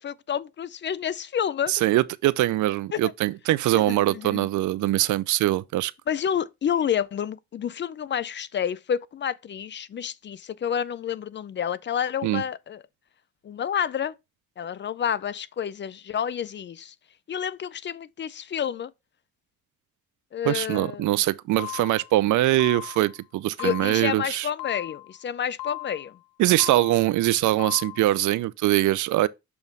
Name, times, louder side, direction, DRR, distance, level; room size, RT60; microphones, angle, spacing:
voice 1, 0.0-1.7 2.9-3.1 3.7-4.5 6.1-12.8 13.4-14.1 14.6-16.9 17.3-18.9 20.3-21.1 23.6-26.2, left 8 dB, 40° left, 0.5 m, -29 dB
voice 2, 1.7-5.9 12.2-12.4 20.5-24.5 26.4-29.3, right 16 dB, 75° right, 0.5 m, -23 dB
sound 1, 21.6-22.2 22.6-23.2 23.6-24.2 24.6-25.2 25.6-26.2 26.6-27.2 27.6-28.2, left 22 dB, 85° left, 0.7 m, -37 dB
6.9 x 3.1 x 5.3 m
cardioid pair, 90°, 30 cm